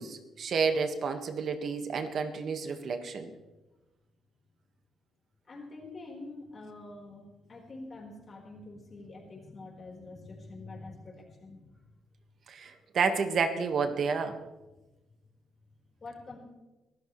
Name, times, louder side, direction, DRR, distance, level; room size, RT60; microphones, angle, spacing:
voice 1, 0.0-3.3 12.5-14.4, right 5 dB, 55° right, 7 dB, 1.6 m, -30 dB
voice 2, 5.5-7.2 7.5-11.7 16.0-16.4, left 2 dB, 40° left, 0 dB, 4.5 m, -46 dB
23.5 x 14.0 x 3.3 m, 1.1 s
cardioid pair, 90°, 0 cm